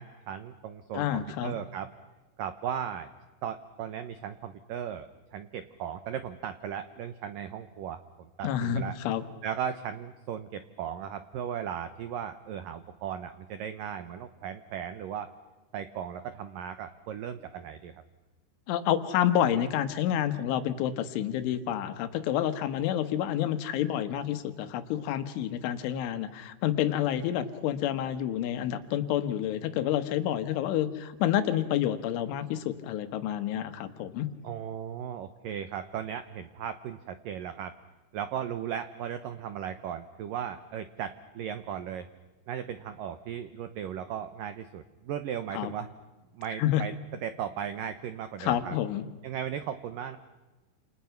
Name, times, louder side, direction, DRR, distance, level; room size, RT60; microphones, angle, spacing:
voice 1, 0.0-1.9 2.4-3.1 3.4-9.0 9.4-15.3 15.7-18.0 34.4-37.7 38.1-42.1 42.5-45.9 46.3-46.9 47.2-48.8 49.2-50.2, right 9 dB, 90° right, 10 dB, 1.9 m, -37 dB
voice 2, 0.9-1.6 8.4-9.2 18.7-34.3 45.5-45.7 46.6-46.8 48.4-49.1, left 11 dB, 90° left, 10 dB, 3.8 m, -29 dB
29.5 x 29.0 x 5.9 m, 1.2 s
omnidirectional pair, 5.4 m